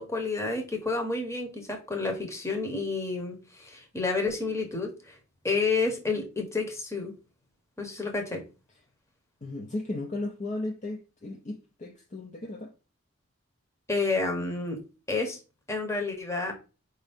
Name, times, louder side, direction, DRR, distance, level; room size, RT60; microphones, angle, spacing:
voice 1, 0.0-5.2 5.4-7.1 7.8-8.4 13.9-14.8 15.1-15.4 15.7-16.5, left 3 dB, 15° left, 0.9 m, -30 dB
voice 2, 9.4-12.7, left 2 dB, 35° left, 0.5 m, -35 dB
4.9 x 2.7 x 3.4 m
head